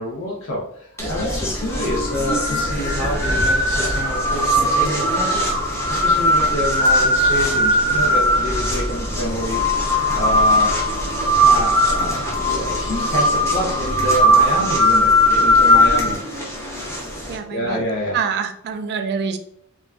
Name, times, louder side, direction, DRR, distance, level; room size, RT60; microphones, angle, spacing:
voice 1, 0.0-10.7 11.3-16.2 17.5-18.2, left 1 dB, 60° left, -3 dB, 0.6 m, -27 dB
sound 1, 1.0-17.4, equal, 10° left, 0.7 m, -19 dB
voice 2, 17.3-17.8 18.1-19.4, right 6 dB, 50° right, 8 dB, 0.3 m, -25 dB
2.5 x 2.2 x 3.3 m, 0.67 s
head